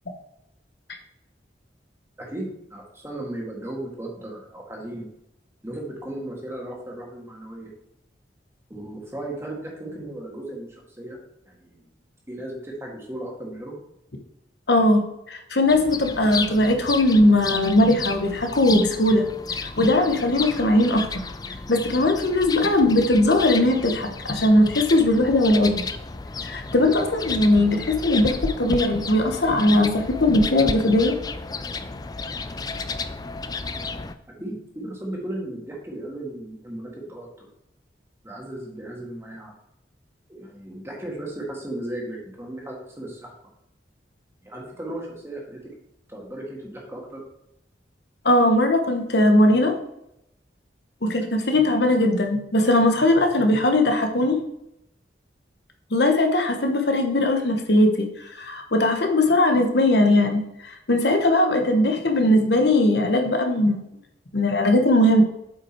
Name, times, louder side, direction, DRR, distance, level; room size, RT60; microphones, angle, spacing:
voice 1, 2.2-5.1 5.6-7.7 8.7-11.2 11.5-12.0 12.3-13.8 34.4-37.5 38.2-39.5 40.3-43.3 44.4-45.6 46.1-47.2, right 1 dB, 15° right, -1 dB, 1.8 m, -36 dB
voice 2, 14.7-19.2 19.6-21.0 21.7-25.9 26.4-31.1 48.2-49.7 51.0-54.4 55.9-58.1 58.4-60.4 60.7-63.8 64.3-65.2, left 1 dB, 65° left, 4 dB, 1.1 m, -19 dB
sound 1, 15.7-34.1, left 4 dB, 20° left, 0.4 m, -32 dB
7.9 x 5.4 x 4.5 m, 0.80 s
head